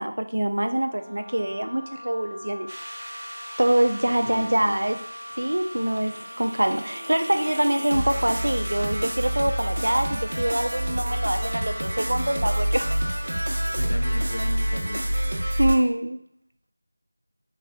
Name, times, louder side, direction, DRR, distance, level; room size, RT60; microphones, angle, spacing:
voice 1, 0.0-2.7 3.6-5.0 5.4-12.9 15.6-16.2, right 1 dB, 75° right, 7 dB, 0.5 m, -24 dB
Wind instrument woodwind instrument, 0.8-13.3, left 1 dB, 20° left, 0.9 m, -42 dB
sound 1, 2.7-15.7, right 1 dB, 50° right, 1.1 m, -29 dB
voice 2, 4.0-4.8 13.8-15.1, left 1 dB, 60° left, 4 dB, 0.7 m, -36 dB
3.7 x 3.3 x 3.3 m, 0.66 s
figure-of-eight pair, 170°, 0 cm